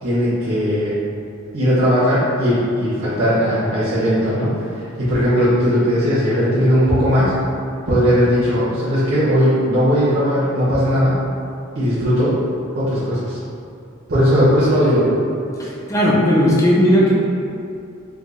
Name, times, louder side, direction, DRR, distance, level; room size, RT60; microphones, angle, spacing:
voice 1, 0.0-1.0 1.5-7.3 7.9-11.2 11.7-12.4 12.7-13.4 14.1-15.1, equal, 75° right, -12 dB, 0.9 m, -18 dB
voice 2, 15.5-17.1, equal, 15° left, -5 dB, 0.5 m, -16 dB
4.7 x 2.3 x 2.4 m, 2.6 s
head